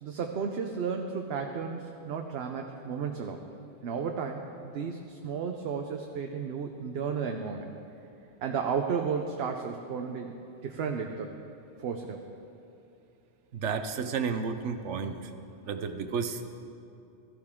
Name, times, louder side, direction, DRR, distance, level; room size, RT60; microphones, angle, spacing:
voice 1, 0.0-3.4 3.8-7.7 8.4-11.3 11.8-12.4, right 6 dB, 65° right, 3 dB, 0.9 m, -33 dB
voice 2, 13.5-15.3 15.6-16.5, right 6 dB, 85° right, 8 dB, 1.1 m, -32 dB
16.5 x 13.5 x 3.7 m, 2.7 s
omnidirectional pair, 1.2 m